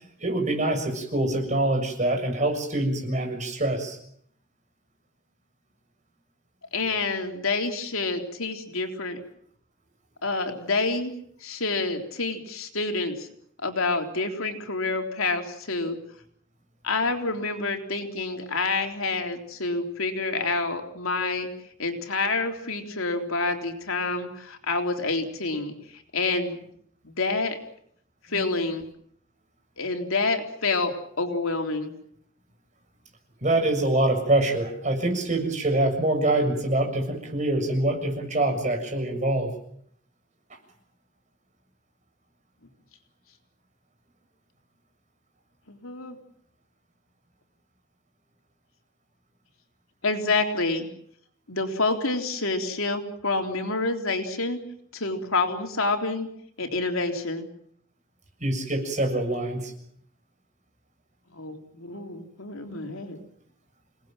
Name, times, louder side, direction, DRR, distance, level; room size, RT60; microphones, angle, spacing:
voice 1, 0.2-4.0 33.4-39.5 58.4-59.7, right 1 dB, 35° right, 3 dB, 6.9 m, -25 dB
voice 2, 6.7-9.2 10.2-11.1 11.4-13.3 13.6-16.0 16.8-21.5 21.8-25.7 26.1-26.6 27.0-27.6 28.3-28.8 29.8-31.9 45.7-46.2 50.0-50.9 51.5-54.6 54.9-56.3 56.6-57.5 61.3-63.2, left 3 dB, 80° left, 4 dB, 3.7 m, -28 dB
29.5 x 19.0 x 7.6 m, 0.68 s
head